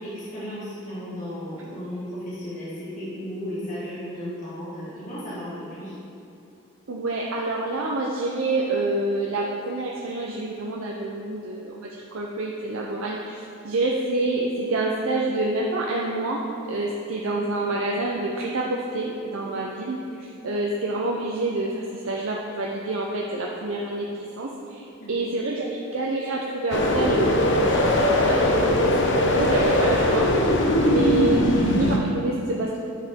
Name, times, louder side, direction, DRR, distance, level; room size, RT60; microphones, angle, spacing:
voice 1, 0.0-5.9 25.0-25.2, equal, 40° left, -10 dB, 1.5 m, -34 dB
voice 2, 6.9-16.4 16.7-20.0 20.4-30.4 30.8-32.8, right 2 dB, 85° right, -2 dB, 0.6 m, -27 dB
sound 1, 26.7-32.0, left 1 dB, 60° left, 0.7 m, -20 dB
9.2 x 4.9 x 3.6 m, 2.7 s
head